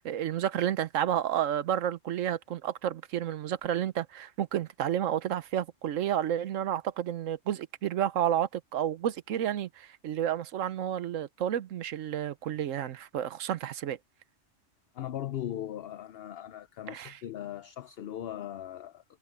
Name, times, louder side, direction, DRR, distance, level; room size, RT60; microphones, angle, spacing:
voice 1, 0.0-14.0 16.9-17.2, right 10 dB, 85° right, 1.2 m, -31 dB
voice 2, 14.9-19.0, left 11 dB, 60° left, 0.8 m, -38 dB
omnidirectional pair, 1.3 m